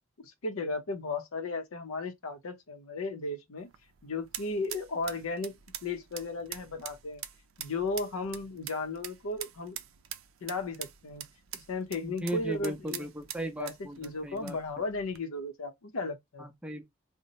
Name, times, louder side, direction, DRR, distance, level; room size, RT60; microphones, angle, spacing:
voice 1, 0.2-3.7 4.0-5.5 5.8-7.2 7.6-9.8 10.4-11.2 11.5-13.1 13.6-16.5, left 3 dB, 85° left, 0.6 m, -35 dB
sound 1, 3.6-15.2, right 11 dB, 70° right, 0.4 m, -45 dB
voice 2, 12.0-14.6 16.4-16.8, right 1 dB, 5° right, 0.5 m, -37 dB
2.7 x 2.1 x 4.0 m
head